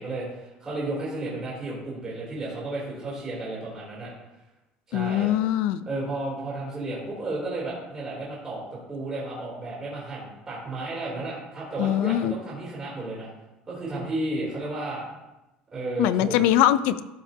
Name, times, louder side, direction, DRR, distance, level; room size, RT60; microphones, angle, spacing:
voice 1, 0.0-4.1 4.9-5.3 5.8-13.3 13.7-15.0 15.7-16.4, right 2 dB, 20° right, -7 dB, 3.2 m, -33 dB
voice 2, 4.9-5.9 11.8-12.3 16.0-17.0, left 12 dB, 75° left, 14 dB, 0.4 m, -22 dB
13.0 x 5.7 x 2.8 m, 0.97 s
cardioid pair, 160°, 3 cm